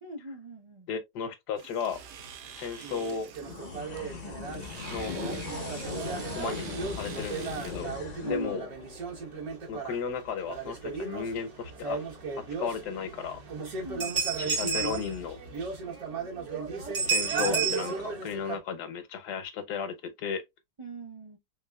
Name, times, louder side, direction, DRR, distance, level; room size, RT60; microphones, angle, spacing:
voice 1, 0.0-0.9 8.2-8.7 13.8-14.2 20.8-21.4, equal, 45° right, 0.3 m, -40 dB
voice 2, 0.9-2.0 2.5-3.3 4.8-5.1 6.3-7.9 8.2-8.7 9.7-12.0 12.6-13.4 14.4-15.4 17.1-20.4, left 6 dB, 80° left, 1.3 m, -34 dB
Domestic sounds home sounds, 1.6-7.9, right 9 dB, 85° right, 1.2 m, -47 dB
sound 1, 1.9-18.6, right 5 dB, 65° right, 1.6 m, -34 dB
sound 2, 3.4-10.1, left 4 dB, 55° left, 0.4 m, -39 dB
3.5 x 3.5 x 2.2 m
omnidirectional pair, 1.8 m